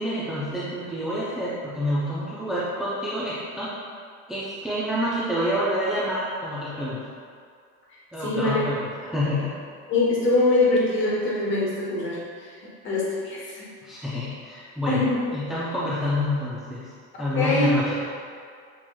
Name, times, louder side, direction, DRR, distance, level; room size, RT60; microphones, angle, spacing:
voice 1, 0.0-3.7 4.3-7.0 8.1-9.5 13.8-15.0 15.3-16.8 17.2-17.9, left 1 dB, ahead, -9 dB, 0.4 m, -27 dB
voice 2, 8.2-8.6 9.9-12.6 12.8-13.7 14.9-15.1 17.3-17.9, left 2 dB, 35° left, -6 dB, 1.2 m, -23 dB
6.2 x 2.8 x 2.3 m, 2.2 s
supercardioid pair, 135°, 36 cm